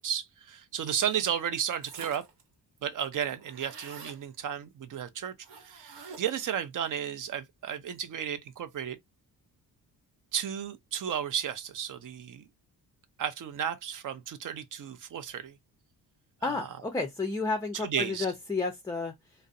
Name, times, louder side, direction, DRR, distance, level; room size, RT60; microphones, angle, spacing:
voice 1, 0.0-2.2 2.8-5.3 5.6-9.0 10.3-12.4 13.2-15.6 16.4-16.7 17.7-18.3, right 9 dB, 55° right, 0.5 m, -33 dB
sound 1, 1.8-2.4 2.8-2.9 3.0-4.2 5.4-6.5, right 5 dB, 85° right, 0.9 m, -47 dB
voice 2, 16.4-19.1, left 3 dB, 10° left, 0.4 m, -31 dB
2.5 x 2.0 x 2.4 m
cardioid pair, 115°, 40 cm